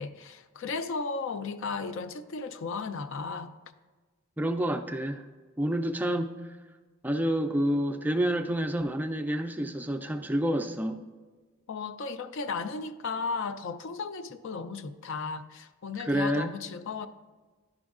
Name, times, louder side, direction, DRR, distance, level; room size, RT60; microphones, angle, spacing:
voice 1, 0.0-3.5 11.7-17.1, left 4 dB, 60° left, 0.4 m, -35 dB
voice 2, 4.4-5.2 5.6-6.6 7.0-11.0 16.1-16.5, equal, 10° right, 0.3 m, -28 dB
10.5 x 5.1 x 2.4 m
head